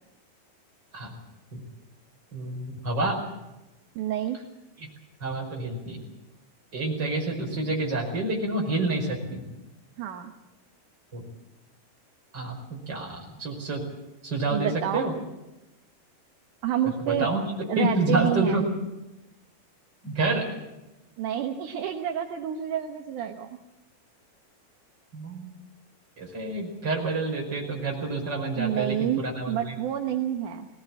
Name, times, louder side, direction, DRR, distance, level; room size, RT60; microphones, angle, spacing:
voice 1, 2.3-3.2 4.8-4.9 5.2-6.0 6.7-9.4 11.1-11.2 12.3-13.8 14.2-15.1 17.0-17.4 17.8-18.6 20.0-20.5 25.1-25.5 26.2-29.8, right 2 dB, 25° right, 0 dB, 5.5 m, -28 dB
voice 2, 4.0-4.4 10.0-10.3 14.5-15.1 16.6-17.3 17.7-18.7 21.2-23.5 28.6-30.7, right 10 dB, 65° right, 5 dB, 2.2 m, -29 dB
21.5 x 18.0 x 8.7 m, 0.97 s
omnidirectional pair, 4.7 m